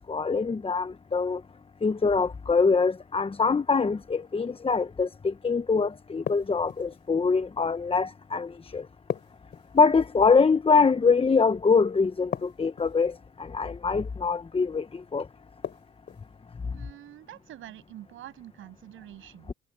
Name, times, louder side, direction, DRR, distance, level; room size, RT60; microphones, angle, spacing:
voice 1, 0.1-1.4 1.8-8.9 9.7-15.3 16.6-16.8 19.5-19.6, left 4 dB, 30° left, 1.0 m, -24 dB
sound 1, 6.3-7.0 9.1-10.1 12.3-13.1 15.6-16.3, left 8 dB, 60° left, 3.0 m, -36 dB
voice 2, 16.7-19.5, right 13 dB, 80° right, 6.7 m, -46 dB
supercardioid pair, 65°, 20 cm